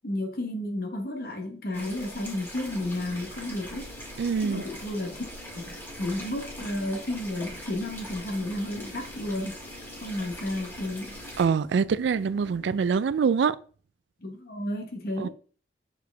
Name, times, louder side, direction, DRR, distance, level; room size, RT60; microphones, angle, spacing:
voice 1, 0.0-3.9 4.4-5.3 5.5-9.6 10.0-11.2 14.2-15.3, left 1 dB, 60° left, 1.1 m, -32 dB
sound 1, 1.7-11.4, equal, 15° left, 2.1 m, -42 dB
sound 2, 2.6-12.9, left 2 dB, 85° left, 2.0 m, -48 dB
voice 2, 4.2-4.6 11.4-13.6 15.2-15.3, right 6 dB, 85° right, 0.3 m, -24 dB
6.8 x 4.7 x 3.4 m
head